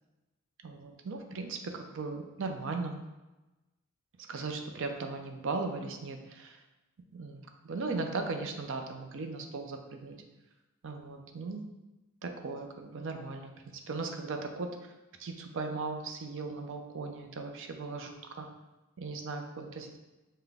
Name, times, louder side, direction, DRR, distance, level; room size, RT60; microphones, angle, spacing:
voice 1, 0.6-2.9 4.3-6.6 7.1-10.2 10.8-11.6 12.2-13.5 13.9-14.8 15.2-18.5 19.0-20.0, right 3 dB, 60° right, 4 dB, 0.5 m, -37 dB
5.8 x 2.2 x 3.4 m, 1.1 s
head